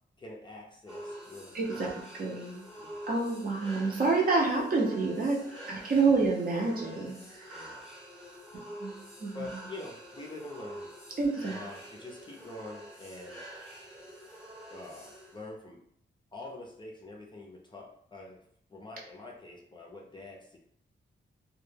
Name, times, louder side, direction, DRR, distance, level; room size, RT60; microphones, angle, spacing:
voice 1, 0.2-1.9 2.7-3.0 5.4-5.5 7.5-7.9 9.3-10.9 11.5-13.4 14.7-15.8 16.3-18.4 18.7-20.6, left 2 dB, 25° left, -1 dB, 0.5 m, -45 dB
sound 1, 0.9-15.5, right 1 dB, 5° right, 0.8 m, -47 dB
voice 2, 1.5-2.6 3.1-5.4 5.7-7.7 8.8-8.9 9.2-9.5 11.2-11.6, right 3 dB, 50° right, -2 dB, 0.6 m, -28 dB
2.2 x 2.1 x 3.2 m, 0.68 s
wide cardioid pair, 110°, 20 cm